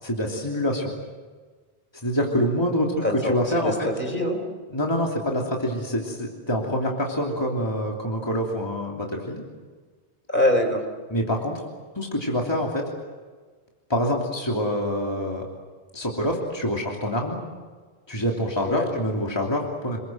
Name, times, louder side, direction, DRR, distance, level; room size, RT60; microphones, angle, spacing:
voice 1, 0.0-0.9 2.0-3.9 4.7-9.4 11.1-11.6 11.9-12.9 13.9-15.4 15.9-17.4 18.1-20.0, equal, 25° left, -1 dB, 3.1 m, -26 dB
voice 2, 3.0-4.4 10.3-10.8 18.6-18.9, left 1 dB, 50° left, 4 dB, 4.4 m, -24 dB
29.0 x 21.5 x 7.8 m, 1.4 s
omnidirectional pair, 1.1 m